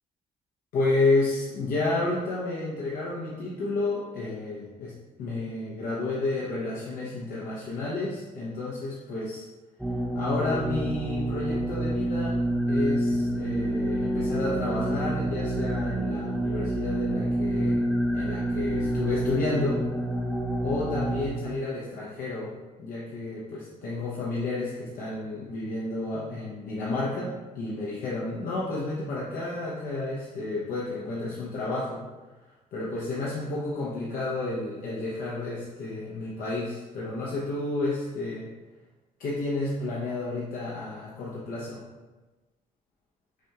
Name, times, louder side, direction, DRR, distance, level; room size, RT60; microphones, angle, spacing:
voice 1, 0.7-9.4 10.1-12.4 12.7-17.8 18.1-19.8 20.6-22.5 22.8-32.0 32.7-38.5 39.2-41.8, left 2 dB, 75° left, -6 dB, 0.8 m, -31 dB
sound 1, 9.8-21.3, right 1 dB, ahead, 0.4 m, -28 dB
6.0 x 2.3 x 2.8 m, 1.2 s
cardioid pair, 160°, 15 cm